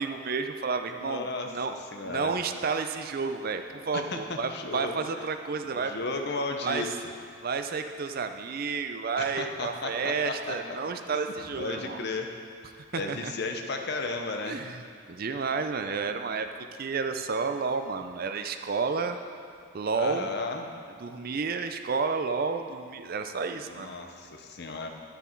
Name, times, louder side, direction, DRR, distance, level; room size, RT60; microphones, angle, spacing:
voice 1, 0.0-5.9 6.6-6.9 7.4-12.0 12.9-13.3 14.5-14.8 15.1-16.5 16.8-19.2 19.7-20.3 21.0-23.9, right 5 dB, 45° right, 7 dB, 0.4 m, -31 dB
voice 2, 1.0-1.5 1.9-2.3 3.9-4.2 4.5-5.0 5.8-6.9 9.2-10.8 11.6-12.3 12.9-14.6 19.9-20.7 23.7-24.9, left 3 dB, 50° left, 4 dB, 0.8 m, -34 dB
11.5 x 7.0 x 4.5 m, 2.5 s
head